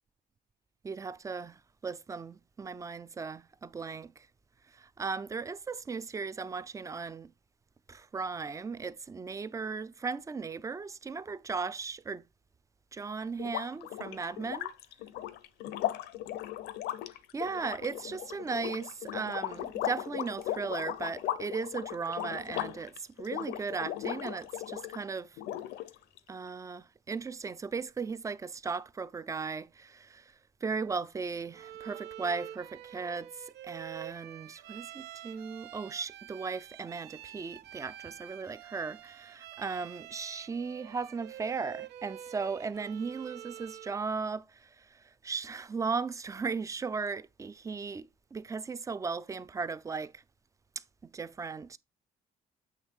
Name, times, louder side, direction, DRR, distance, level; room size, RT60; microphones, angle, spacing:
voice 1, 0.8-4.3 4.7-7.3 7.9-12.2 12.9-14.7 17.3-25.4 26.3-30.3 30.6-50.2 50.8-51.8, right 5 dB, 20° right, 0.4 m, -37 dB
sound 1, 13.4-25.0 25.4-26.2, left 13 dB, 80° left, 0.7 m, -37 dB
Bowed string instrument, 31.5-44.1, right 12 dB, 80° right, 0.5 m, -47 dB
8.1 x 3.1 x 4.5 m
cardioid pair, 110°, 17 cm